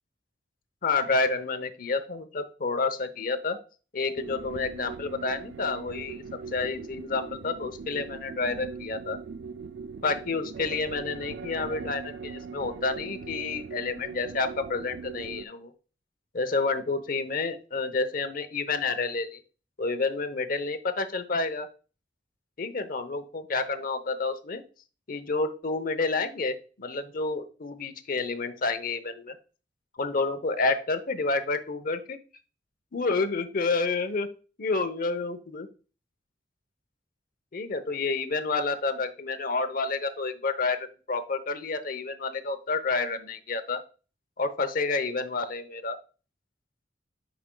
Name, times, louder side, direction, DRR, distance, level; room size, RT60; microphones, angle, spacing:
voice 1, 0.8-3.6 3.9-6.2 6.5-9.2 10.0-15.7 16.3-19.4 19.8-21.7 22.6-24.6 25.1-29.4 30.0-32.2 32.9-34.3 34.6-35.7 37.5-43.8 44.4-46.0, left 3 dB, 50° left, 10 dB, 0.8 m, -29 dB
sound 1, 4.2-15.5, right 5 dB, 80° right, 0.3 m, -40 dB
9.1 x 5.1 x 2.3 m, 0.35 s
head